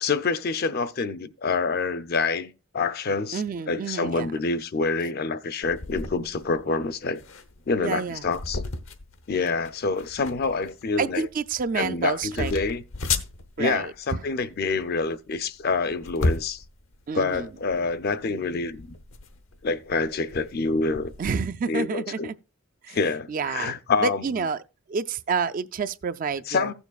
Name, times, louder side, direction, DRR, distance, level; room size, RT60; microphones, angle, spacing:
voice 1, 0.0-7.2 7.7-8.6 9.3-11.3 11.8-12.8 13.6-16.6 17.1-18.9 19.6-21.1 21.7-22.3 22.9-24.4 26.5-26.7, left 4 dB, 50° left, 0.5 m, -27 dB
voice 2, 3.3-4.3 7.8-8.2 11.0-12.6 13.6-13.9 17.1-17.5 21.2-22.3 22.8-23.0 23.3-24.6 24.9-26.7, right 5 dB, 40° right, 0.4 m, -29 dB
sound 1, 5.6-21.4, left 3 dB, 75° left, 0.9 m, -35 dB
15.5 x 7.1 x 2.4 m
head